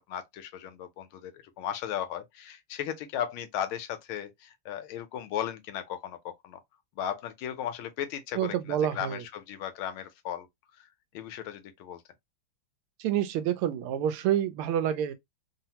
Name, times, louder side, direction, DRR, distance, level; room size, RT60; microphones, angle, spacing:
voice 1, 0.1-6.6 7.0-10.5 10.8-10.9 11.1-12.0, left 10 dB, 80° left, 1.4 m, -36 dB
voice 2, 8.3-9.2 13.0-15.1, right 10 dB, 80° right, 1.5 m, -28 dB
3.7 x 2.0 x 2.8 m
omnidirectional pair, 2.4 m